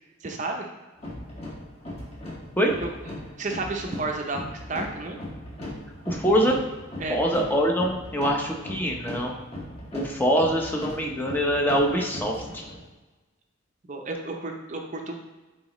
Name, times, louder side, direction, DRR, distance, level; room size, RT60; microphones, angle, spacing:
voice 1, 0.2-0.7 2.8-2.9 3.4-5.2 7.0-7.2 13.9-15.2, right 3 dB, 35° right, 3 dB, 0.6 m, -31 dB
sound 1, 1.0-12.8, left 1 dB, 30° left, 1.7 m, -38 dB
voice 2, 6.1-6.6 7.1-9.3 9.9-12.7, equal, 10° left, 0 dB, 0.7 m, -24 dB
9.1 x 3.9 x 3.1 m, 1.2 s
head